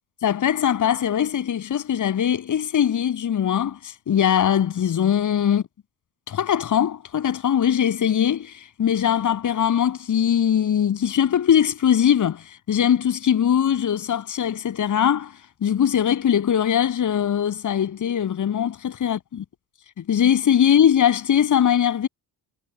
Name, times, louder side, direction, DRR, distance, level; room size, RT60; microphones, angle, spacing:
voice 1, 0.2-5.6 6.3-8.5 8.8-15.3 15.6-19.4 20.0-22.1, left 9 dB, 50° left, 7.8 m, -21 dB
cardioid pair, 150°, 40 cm